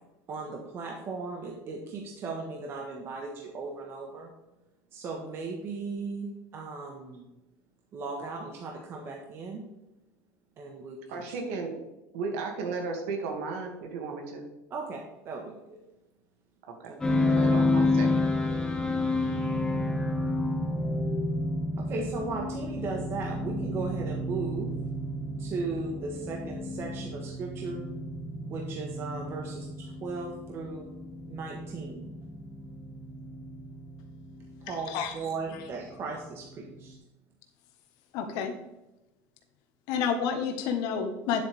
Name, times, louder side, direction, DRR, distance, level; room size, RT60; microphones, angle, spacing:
voice 1, 0.3-4.3 4.9-7.3 7.9-9.6 10.6-11.2 14.7-15.8 16.9-17.4 21.8-24.7 25.4-27.9 28.5-30.9 31.3-32.1 34.6-37.0, right 3 dB, 35° right, 0 dB, 1.3 m, -37 dB
voice 2, 11.1-11.7 12.1-14.5 16.7-17.0 17.4-18.2, right 4 dB, 85° right, 2 dB, 2.2 m, -35 dB
sound 1, 17.0-36.9, left 2 dB, 10° left, 1.8 m, -31 dB
voice 3, 38.1-38.5 39.9-41.4, left 7 dB, 60° left, 5 dB, 1.4 m, -29 dB
9.8 x 8.1 x 3.5 m, 0.98 s
cardioid pair, 155°, 7 cm